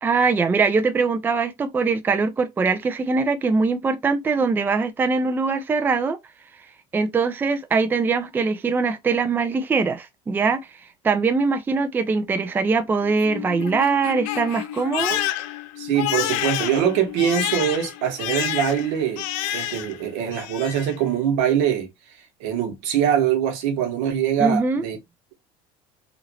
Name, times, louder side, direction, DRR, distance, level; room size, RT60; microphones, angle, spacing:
voice 1, 0.0-6.2 6.9-10.8 11.0-15.2 24.4-24.8, right 4 dB, 15° right, 0.4 m, -22 dB
Crying sobbing, 13.0-20.0 20.3-21.0, left 13 dB, 75° left, 0.5 m, -29 dB
voice 2, 15.8-19.2 19.5-21.9 22.4-25.0, right 9 dB, 75° right, 1.0 m, -23 dB
3.0 x 2.5 x 2.9 m
supercardioid pair, 125°, 13 cm